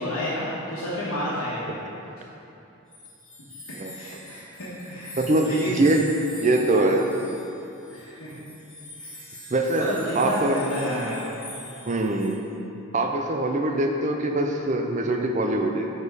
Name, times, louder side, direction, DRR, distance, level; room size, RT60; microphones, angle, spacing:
voice 1, 0.0-1.7 3.9-4.4 4.9-5.8 7.9-8.3 9.0-9.1 9.8-11.3 12.7-12.9 13.7-13.8 14.3-14.9, equal, 85° left, -12 dB, 1.4 m, -30 dB
sound 1, 2.9-12.4, left 1 dB, 5° left, 1.2 m, -44 dB
voice 2, 5.2-6.0 6.4-7.2 9.5-10.6 11.9-12.4 12.9-15.9, right 2 dB, 35° right, 3 dB, 0.5 m, -23 dB
7.1 x 4.4 x 4.9 m, 2.8 s
head